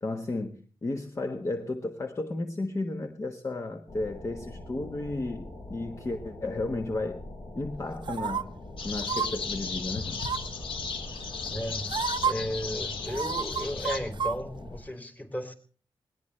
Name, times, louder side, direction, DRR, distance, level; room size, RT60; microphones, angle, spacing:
voice 1, 0.0-7.2 7.5-8.5 8.8-10.2, left 2 dB, 35° left, 6 dB, 1.5 m, -33 dB
sound 1, 3.9-14.8, left 1 dB, 50° left, 6.8 m, -43 dB
sound 2, 8.0-8.4 9.0-9.3 10.2-10.6 11.5-11.6 11.9-12.3 13.1-14.3 14.7-14.8, right 7 dB, 60° right, 0.8 m, -30 dB
sound 3, 8.8-14.0, left 5 dB, 80° left, 2.9 m, -35 dB
voice 2, 11.5-11.9 12.2-15.5, equal, 20° left, 7 dB, 3.3 m, -34 dB
20.5 x 20.0 x 3.4 m, 0.42 s
wide cardioid pair, 105°, 9 cm